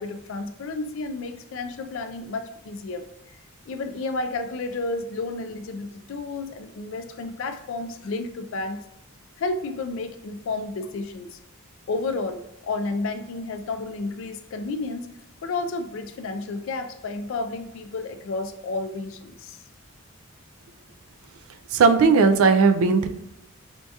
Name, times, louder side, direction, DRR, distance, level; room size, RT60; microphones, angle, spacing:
voice 1, 0.0-3.1 3.7-8.8 9.4-11.4 11.9-15.1 15.4-19.6, left 3 dB, 60° left, 7 dB, 0.3 m, -31 dB
voice 2, 21.7-23.1, right 4 dB, 75° right, 7 dB, 0.3 m, -17 dB
4.4 x 2.7 x 2.3 m, 0.84 s
head